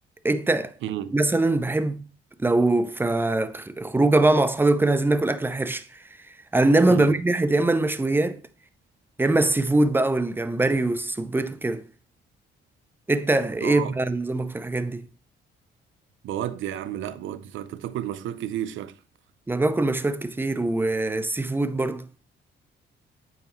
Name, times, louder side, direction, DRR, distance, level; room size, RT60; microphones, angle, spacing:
voice 1, 0.2-0.7 1.1-2.0 2.4-5.9 6.5-8.4 9.2-11.8 13.1-15.1 19.5-22.0, right 2 dB, 10° right, 0.6 m, -22 dB
voice 2, 0.8-1.1 6.9-7.2 13.6-13.9 16.2-19.0, right 11 dB, 75° right, 0.5 m, -31 dB
8.5 x 4.8 x 3.0 m
cardioid pair, 90°, 20 cm